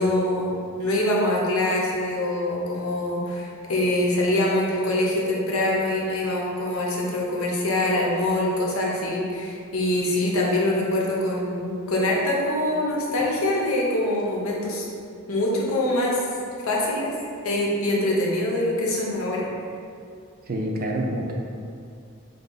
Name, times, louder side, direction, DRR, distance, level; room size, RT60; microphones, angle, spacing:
voice 1, 0.0-14.8 15.3-16.2 16.6-17.2 17.4-19.5, left 1 dB, 90° left, -3 dB, 0.8 m, -24 dB
voice 2, 20.5-21.3, right 1 dB, 45° right, 0 dB, 0.5 m, -27 dB
3.8 x 2.7 x 3.8 m, 2.4 s
head